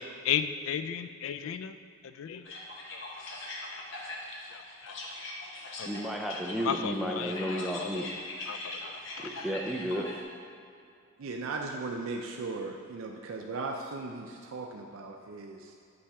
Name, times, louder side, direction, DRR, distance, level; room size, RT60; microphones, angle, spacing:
voice 1, 0.2-1.8 2.0-2.6 2.9-3.0 4.5-4.9 5.8-5.9 6.6-9.5, left 8 dB, 80° left, 11 dB, 0.3 m, -35 dB
sound 1, 2.4-10.2, left 2 dB, 60° left, 0.9 m, -41 dB
voice 2, 5.8-8.1 9.2-10.1, equal, ahead, 1 dB, 0.4 m, -33 dB
voice 3, 11.2-15.6, right 3 dB, 80° right, 1 dB, 0.5 m, -37 dB
8.6 x 3.3 x 4.7 m, 2.4 s
head